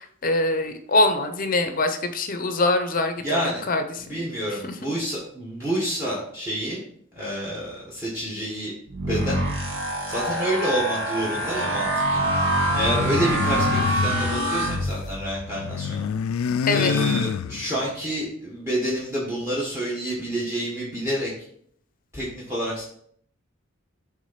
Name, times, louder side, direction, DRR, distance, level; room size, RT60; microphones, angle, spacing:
voice 1, 0.0-4.2 4.6-4.7 16.7-17.0, left 2 dB, 40° left, 8 dB, 0.6 m, -24 dB
voice 2, 3.2-3.6 4.0-6.8 7.1-8.7 9.0-9.4 10.1-12.2 12.7-16.1 16.7-21.3 22.1-22.8, equal, 15° right, -5 dB, 1.5 m, -28 dB
sound 1, 8.9-15.4, right 1 dB, 70° right, 1.6 m, -25 dB
sound 2, 12.7-15.1 15.4-17.9, left 7 dB, 85° left, 0.3 m, -28 dB
6.3 x 3.6 x 5.7 m, 0.64 s
head